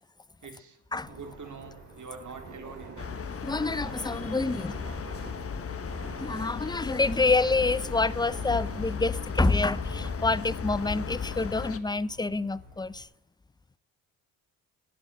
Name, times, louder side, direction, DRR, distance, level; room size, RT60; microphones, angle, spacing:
voice 1, 0.4-0.8 1.1-3.1, right 5 dB, 45° right, 3.5 m, -45 dB
Subway metro underground, 1.0-13.0, right 2 dB, 85° right, 5.9 m, -46 dB
sound 1, 3.0-11.8, left 6 dB, 35° left, 1.1 m, -35 dB
voice 2, 3.4-4.7 6.2-13.1, left 3 dB, 10° left, 0.6 m, -27 dB
11.0 x 9.1 x 9.1 m
hypercardioid pair, 60°, 41 cm